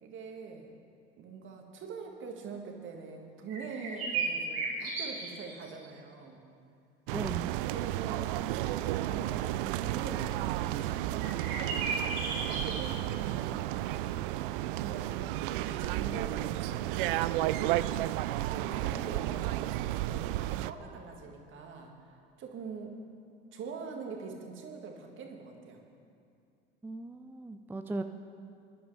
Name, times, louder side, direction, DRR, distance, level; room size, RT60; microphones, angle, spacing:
voice 1, 0.0-0.7 1.2-6.4 7.6-10.5 10.8-11.9 12.6-13.8 14.8-15.3 15.6-17.8 18.5-22.9 23.5-25.8, right 5 dB, 40° right, 2 dB, 1.9 m, -44 dB
sound 1, 3.5-5.6 5.8-5.9 11.2-12.8, right 4 dB, 80° right, 3.9 m, -34 dB
voice 2, 7.1-7.5 26.8-28.0, right 2 dB, 5° right, 7 dB, 0.5 m, -37 dB
sound 2, 7.1-20.7, right 15 dB, 60° right, 0.4 m, -32 dB
21.0 x 11.0 x 3.4 m, 2.4 s
figure-of-eight pair, 70°, 30 cm